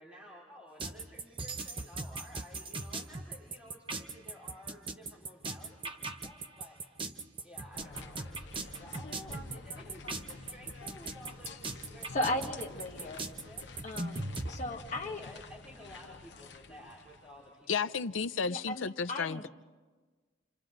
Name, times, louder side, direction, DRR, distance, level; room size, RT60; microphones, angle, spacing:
voice 1, 0.0-7.1 7.4-13.6 15.0-17.9, left 1 dB, 5° right, 4.6 m, -53 dB
sound 1, 0.8-14.5, right 3 dB, 25° right, 0.9 m, -39 dB
sound 2, 7.7-17.6, left 3 dB, 60° left, 1.0 m, -49 dB
voice 2, 12.1-13.2 13.8-15.2 18.5-19.5, left 1 dB, 35° left, 1.7 m, -36 dB
voice 3, 17.7-19.5, left 5 dB, 80° left, 0.6 m, -33 dB
29.0 x 27.0 x 3.9 m
head